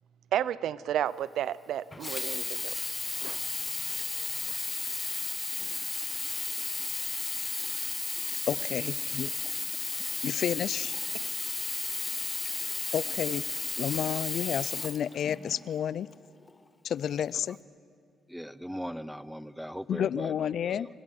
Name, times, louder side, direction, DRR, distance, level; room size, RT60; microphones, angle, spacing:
voice 1, 0.3-3.4, right 10 dB, 75° right, 19 dB, 0.5 m, -32 dB
Sink (filling or washing), 1.9-15.7 16.4-16.5, left 3 dB, 25° left, 1.4 m, -34 dB
voice 2, 8.5-9.3 9.7-9.8 10.2-11.0 12.9-13.4 13.8-16.1 16.8-17.6 19.9-20.9, left 9 dB, 65° left, 21 dB, 0.4 m, -31 dB
voice 3, 18.3-20.9, equal, ahead, 17 dB, 0.6 m, -39 dB
29.5 x 14.5 x 6.4 m, 2.5 s
cardioid pair, 90°, 0 cm